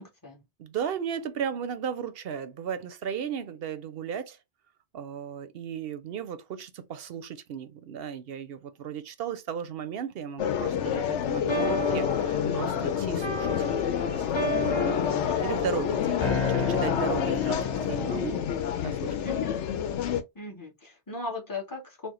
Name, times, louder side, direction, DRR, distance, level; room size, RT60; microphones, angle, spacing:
voice 1, 0.0-0.4 19.2-19.6 20.3-22.1, left 3 dB, 20° left, 1.0 m, -37 dB
voice 2, 0.6-4.4 4.9-16.2 16.5-18.4 18.8-19.1, right 8 dB, 65° right, 0.8 m, -36 dB
sound 1, 10.4-20.2, left 9 dB, 85° left, 0.9 m, -28 dB
sound 2, 11.5-18.4, left 2 dB, 35° left, 0.5 m, -32 dB
4.3 x 2.1 x 3.0 m
omnidirectional pair, 1.2 m